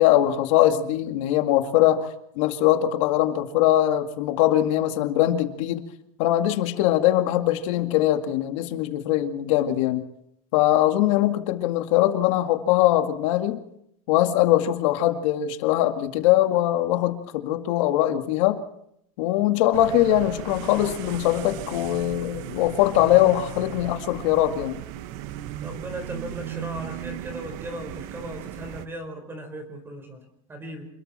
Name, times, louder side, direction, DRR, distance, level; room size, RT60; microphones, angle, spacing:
voice 1, 0.0-2.1 2.4-5.8 6.2-10.0 10.5-13.6 14.1-18.6 19.2-24.8, left 13 dB, 60° left, 6 dB, 2.2 m, -21 dB
sound 1, 19.7-28.9, right 12 dB, 50° right, 1.0 m, -36 dB
voice 2, 25.6-30.9, right 1 dB, 10° right, 7 dB, 4.7 m, -37 dB
28.0 x 21.5 x 4.4 m, 0.73 s
supercardioid pair, 165°, 18 cm